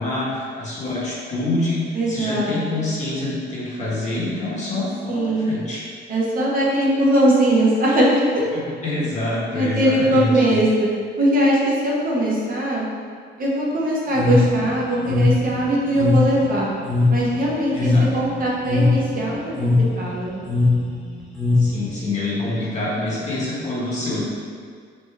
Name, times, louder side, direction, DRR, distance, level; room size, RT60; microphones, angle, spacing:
voice 1, 0.0-5.8 8.5-10.6 17.7-18.1 21.6-24.2, left 2 dB, 35° left, -7 dB, 1.4 m, -26 dB
voice 2, 1.9-2.8 5.1-5.5 6.1-8.4 9.5-10.9 11.2-12.9 13.4-16.7 17.1-20.4, right 1 dB, 45° right, -5 dB, 0.9 m, -20 dB
sound 1, 14.1-22.0, left 3 dB, ahead, 1.1 m, -20 dB
4.3 x 2.8 x 3.3 m, 2.1 s
cardioid pair, 90°, 20 cm